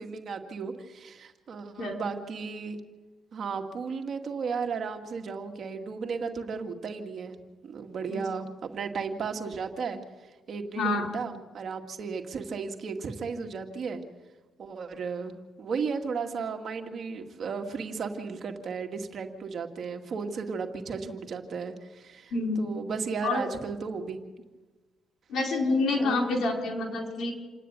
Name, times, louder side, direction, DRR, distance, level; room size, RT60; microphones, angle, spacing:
voice 1, 0.0-2.8 3.3-7.4 7.6-10.0 10.5-14.0 14.6-24.2 26.0-26.2, right 5 dB, 55° right, 5 dB, 2.1 m, -34 dB
voice 2, 10.8-11.1 22.3-22.7 23.2-23.4 25.3-27.3, left 3 dB, 70° left, 2 dB, 4.8 m, -27 dB
28.0 x 10.0 x 9.4 m, 1.3 s
cardioid pair, 90°, 0 cm